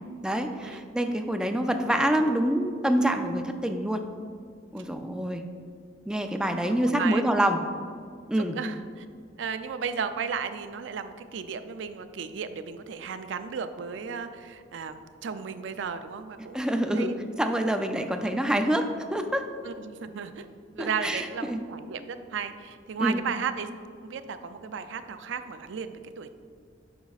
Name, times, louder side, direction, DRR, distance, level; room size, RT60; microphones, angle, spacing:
voice 1, 0.2-4.0 4.7-5.5 6.1-7.6 8.3-8.6 16.5-18.9 19.1-19.5 20.8-21.6 23.0-23.2, right 1 dB, 5° right, 5 dB, 0.4 m, -26 dB
voice 2, 6.7-7.2 8.5-9.1 9.4-17.1 18.2-18.3 19.6-20.5 20.8-23.7 24.0-26.3, right 6 dB, 75° right, 10 dB, 0.4 m, -34 dB
9.3 x 5.9 x 2.4 m, 2.2 s
head